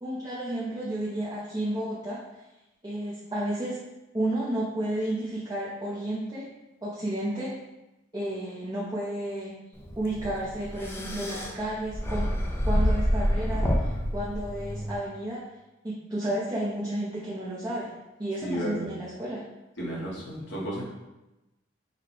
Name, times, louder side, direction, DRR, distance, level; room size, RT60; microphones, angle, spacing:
voice 1, 0.0-2.4 2.8-3.8 4.1-6.5 6.8-7.5 8.1-9.5 10.0-12.3 12.6-15.4 15.8-17.9 18.2-19.4, right 1 dB, 20° right, -8 dB, 0.7 m, -32 dB
sound 1, 9.8-15.0, equal, 10° left, 0.4 m, -28 dB
voice 2, 18.4-18.9 19.8-20.8, equal, 70° left, -4 dB, 1.3 m, -32 dB
5.7 x 2.3 x 3.3 m, 0.98 s
head